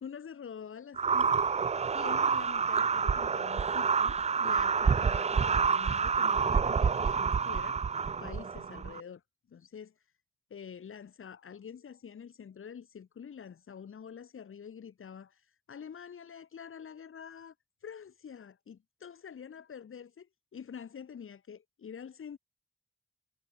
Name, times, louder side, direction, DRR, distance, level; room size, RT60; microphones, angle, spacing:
voice 1, 0.0-1.5 1.9-7.8 8.2-9.2 9.5-10.1 10.5-17.5 17.8-20.3 20.5-22.4, left 7 dB, 80° left, 4.2 m, -46 dB
sound 1, 1.0-9.0, right 5 dB, 30° right, 0.4 m, -28 dB
wide cardioid pair, 135°, 21 cm